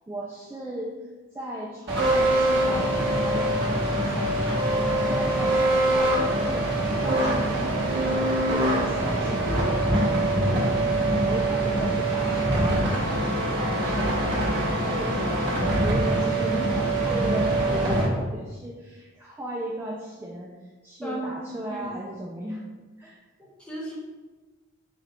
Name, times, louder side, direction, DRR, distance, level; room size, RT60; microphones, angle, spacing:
voice 1, 0.1-1.1 1.3-4.7 5.1-6.7 6.9-13.2 13.6-20.5 20.8-22.6 23.0-23.2, equal, 10° right, -4 dB, 0.3 m, -36 dB
sound 1, 1.9-18.1, right 1 dB, 60° right, 1.2 m, -24 dB
voice 2, 17.7-18.2 21.0-21.3 21.7-21.9 23.4-24.0, right 1 dB, 5° left, -5 dB, 0.8 m, -36 dB
4.0 x 2.3 x 4.2 m, 1.3 s
head